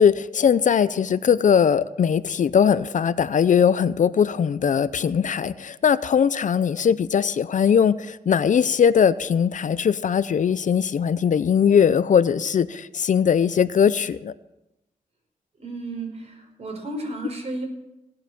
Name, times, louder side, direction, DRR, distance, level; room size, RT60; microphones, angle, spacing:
voice 1, 0.0-14.3, left 7 dB, 60° left, 16 dB, 0.6 m, -20 dB
voice 2, 15.6-17.7, right 2 dB, 45° right, 2 dB, 5.2 m, -33 dB
18.0 x 7.8 x 7.0 m, 0.93 s
cardioid pair, 70°, 15 cm